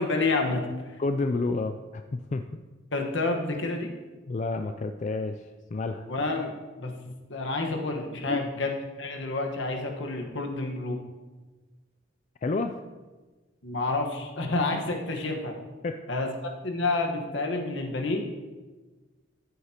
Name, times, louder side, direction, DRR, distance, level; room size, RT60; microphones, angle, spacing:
voice 1, 0.0-1.0 2.9-3.9 6.1-6.9 7.3-8.7 9.0-11.0 13.6-15.5 16.1-16.3 16.6-18.2, left 3 dB, 70° left, 2 dB, 1.3 m, -29 dB
voice 2, 1.0-2.4 4.3-6.1 8.3-8.4 12.4-12.8 15.8-16.0, left 3 dB, 35° left, 7 dB, 0.3 m, -30 dB
14.0 x 8.2 x 2.9 m, 1.3 s
head